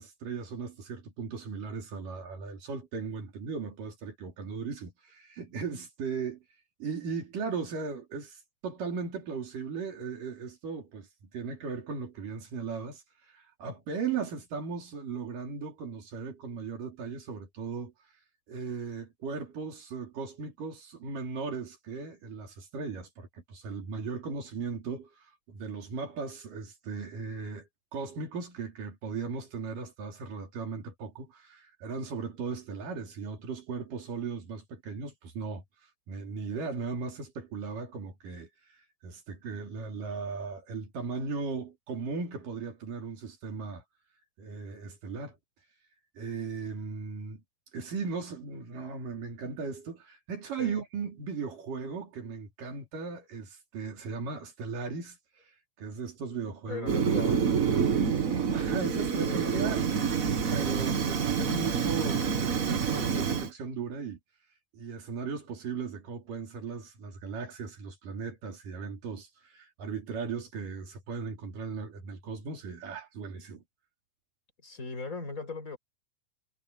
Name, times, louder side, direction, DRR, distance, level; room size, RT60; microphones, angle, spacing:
voice 1, 0.0-6.4 6.8-17.9 18.5-35.6 36.1-43.8 44.4-45.4 46.2-47.4 47.7-56.9 58.5-59.8 60.5-64.2 64.7-73.6, right 5 dB, 80° right, 4.9 m, -37 dB
voice 2, 56.7-57.5 59.1-59.8 74.6-75.8, left 3 dB, 25° left, 6.3 m, -39 dB
Fire, 56.9-63.5, right 6 dB, 60° right, 0.8 m, -27 dB
omnidirectional pair, 3.7 m